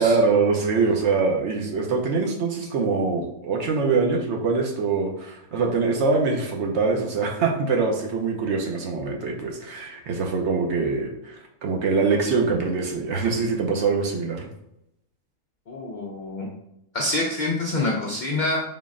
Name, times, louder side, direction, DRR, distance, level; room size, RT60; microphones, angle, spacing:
voice 1, 0.0-14.5, right 4 dB, 65° right, 1 dB, 0.8 m, -23 dB
voice 2, 15.7-16.5 16.9-18.6, left 2 dB, 65° left, -2 dB, 0.4 m, -26 dB
3.9 x 2.1 x 3.6 m, 0.80 s
omnidirectional pair, 1.4 m